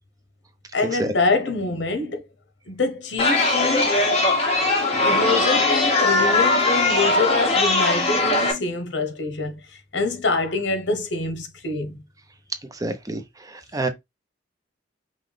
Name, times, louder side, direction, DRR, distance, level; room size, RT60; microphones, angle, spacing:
voice 1, 0.7-2.3 2.7-4.0 5.0-12.0, left 3 dB, 80° left, 1.0 m, -25 dB
Chatter, 3.2-8.5, left 2 dB, 35° left, 1.6 m, -20 dB
voice 2, 12.7-13.9, right 2 dB, 20° right, 0.7 m, -28 dB
5.8 x 2.4 x 3.3 m
head